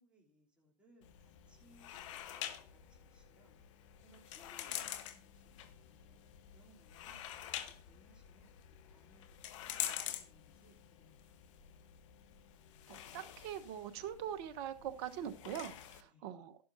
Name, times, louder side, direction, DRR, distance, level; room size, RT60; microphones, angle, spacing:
voice 1, 0.0-3.6 4.0-9.4 9.8-11.2 11.7-11.8 16.0-16.3, right 1 dB, 5° right, -3 dB, 3.2 m, -68 dB
sound 1, 1.0-16.0, left 11 dB, 50° left, 1.1 m, -47 dB
voice 2, 12.9-16.6, right 10 dB, 40° right, 11 dB, 1.1 m, -43 dB
13.0 x 11.5 x 2.7 m, 0.31 s
hypercardioid pair, 125°, 21 cm